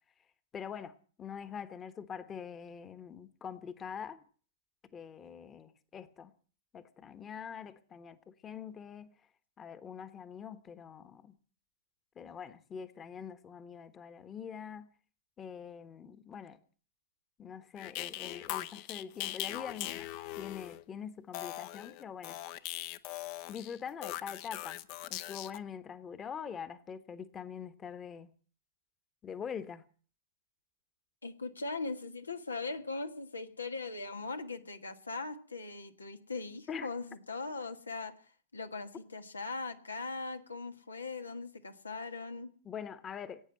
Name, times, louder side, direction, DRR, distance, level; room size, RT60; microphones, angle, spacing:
voice 1, 0.5-4.2 4.9-6.3 6.7-9.1 9.6-11.4 12.1-14.9 15.4-16.6 17.4-20.1 20.4-22.4 23.5-24.8 25.1-28.3 29.2-29.8 36.7-36.9 42.6-43.4, left 7 dB, 25° left, 1.3 m, -44 dB
sound 1, 17.8-20.8 21.3-25.6, left 15 dB, 50° left, 0.9 m, -40 dB
voice 2, 31.2-38.1 38.5-42.5, left 3 dB, 85° left, 1.5 m, -40 dB
17.0 x 9.2 x 8.9 m
figure-of-eight pair, 100°, 0 cm